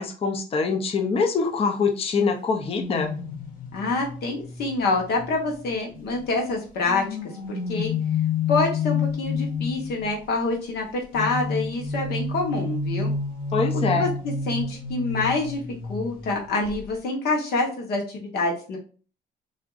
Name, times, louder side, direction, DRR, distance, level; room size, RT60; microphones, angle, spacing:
voice 1, 0.0-3.1 13.5-14.1, left 4 dB, 35° left, 5 dB, 0.7 m, -24 dB
sound 1, 2.6-6.2 6.8-10.1 11.1-16.3 16.6-16.9, left 5 dB, 55° left, 1.6 m, -30 dB
voice 2, 3.7-7.0 7.5-7.9 8.5-13.1 13.9-18.8, left 3 dB, 70° left, 0 dB, 1.3 m, -26 dB
6.2 x 2.6 x 2.5 m, 0.38 s
cardioid pair, 110°, 17 cm